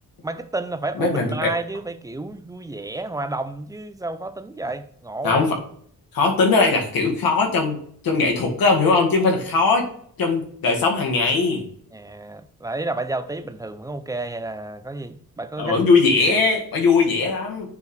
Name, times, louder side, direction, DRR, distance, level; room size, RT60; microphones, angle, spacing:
voice 1, 0.2-5.5 11.9-15.8 16.3-16.4, right 2 dB, 10° right, 0.4 m, -31 dB
voice 2, 1.0-1.5 5.2-5.6 6.1-7.8 8.0-9.9 10.2-11.7 15.6-17.7, left 4 dB, 75° left, 2.0 m, -20 dB
9.2 x 5.1 x 3.2 m
wide cardioid pair, 165°, 35 cm